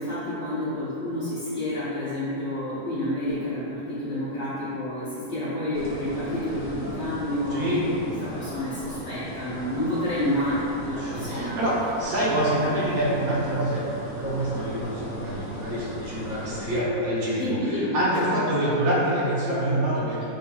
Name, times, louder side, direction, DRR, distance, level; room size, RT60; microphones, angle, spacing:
voice 1, 0.0-7.8 8.2-11.6 17.3-18.3, left 1 dB, 60° left, -10 dB, 0.8 m, -29 dB
sound 1, 5.7-16.8, equal, 35° left, 1.0 m, -36 dB
voice 2, 7.5-7.8 11.0-13.8 14.1-20.3, right 1 dB, 65° right, -7 dB, 1.1 m, -26 dB
4.2 x 3.1 x 2.3 m, 2.8 s
omnidirectional pair, 1.8 m